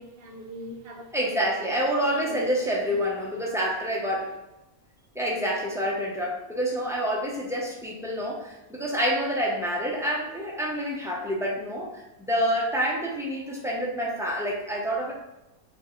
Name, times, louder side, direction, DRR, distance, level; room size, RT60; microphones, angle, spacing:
voice 1, 0.0-2.9, equal, 50° right, 0 dB, 0.8 m, -42 dB
voice 2, 1.1-4.3 5.1-12.0 12.3-15.1, equal, 5° right, -3 dB, 0.4 m, -27 dB
4.4 x 2.8 x 3.7 m, 0.94 s
omnidirectional pair, 1.5 m